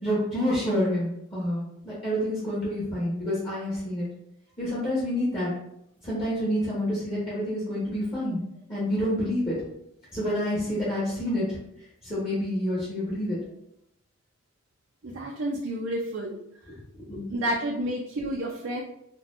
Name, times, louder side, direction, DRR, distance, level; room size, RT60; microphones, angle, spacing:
voice 1, 0.0-4.1 4.6-5.5 6.0-8.4 8.7-9.5 10.1-11.6 12.0-13.4 17.0-17.3, equal, 25° left, -8 dB, 1.1 m, -28 dB
voice 2, 15.0-16.4 17.3-18.8, right 1 dB, 65° right, -1 dB, 0.5 m, -30 dB
4.1 x 2.2 x 2.6 m, 0.77 s
head